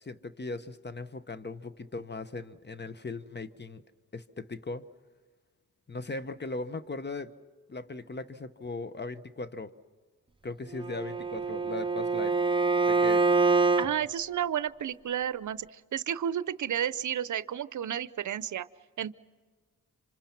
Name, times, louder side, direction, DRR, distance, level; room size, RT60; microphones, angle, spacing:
voice 1, 0.0-3.8 4.1-4.9 5.9-7.3 7.7-9.7 10.4-12.4 12.8-13.3, left 3 dB, 35° left, 13 dB, 1.1 m, -38 dB
Bowed string instrument, 10.7-13.9, right 4 dB, 15° right, 0.7 m, -25 dB
voice 2, 13.8-18.7 19.0-19.1, right 9 dB, 65° right, 16 dB, 0.7 m, -32 dB
27.0 x 26.0 x 6.0 m, 1.4 s
cardioid pair, 60°, 32 cm